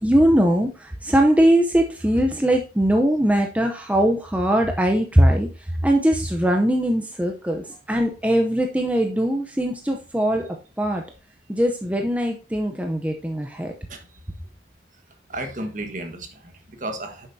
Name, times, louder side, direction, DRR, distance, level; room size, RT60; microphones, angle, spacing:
voice 1, 0.0-5.5 5.8-10.5 10.8-11.0 11.5-13.7, equal, 10° right, 3 dB, 0.7 m, -20 dB
voice 2, 13.9-14.4 15.3-17.3, right 1 dB, 40° right, 5 dB, 1.4 m, -34 dB
9.9 x 7.2 x 2.7 m, 0.32 s
head